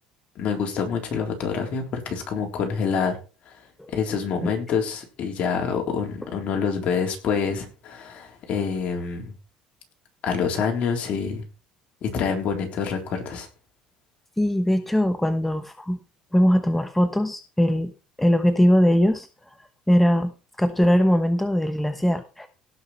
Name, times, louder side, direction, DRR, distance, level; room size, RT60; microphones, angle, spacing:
voice 1, 0.4-3.2 3.5-3.6 3.9-9.3 10.2-11.4 12.0-13.5, left 6 dB, 50° left, 3 dB, 3.7 m, -26 dB
voice 2, 14.4-16.0 16.3-17.9 18.2-19.3 19.9-22.5, equal, 5° left, 9 dB, 1.0 m, -21 dB
17.5 x 6.1 x 4.4 m, 0.32 s
cardioid pair, 115°, 3 cm